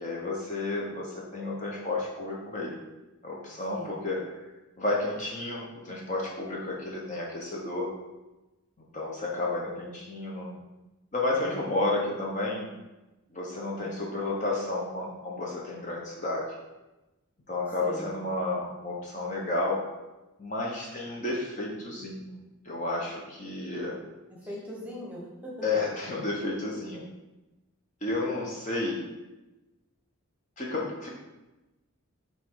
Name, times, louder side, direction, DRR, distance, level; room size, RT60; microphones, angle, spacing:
voice 1, 0.0-2.7 3.2-4.2 4.8-7.9 8.9-10.5 11.1-12.7 13.3-16.6 17.5-19.8 20.4-22.3 22.6-24.0 25.6-27.0 28.0-29.0 30.6-31.1, left 2 dB, 35° left, -3 dB, 0.9 m, -31 dB
voice 2, 3.7-4.0 13.6-14.0 17.7-18.3 24.3-25.7, equal, 5° right, -4 dB, 1.2 m, -41 dB
5.6 x 4.1 x 4.7 m, 1.0 s
head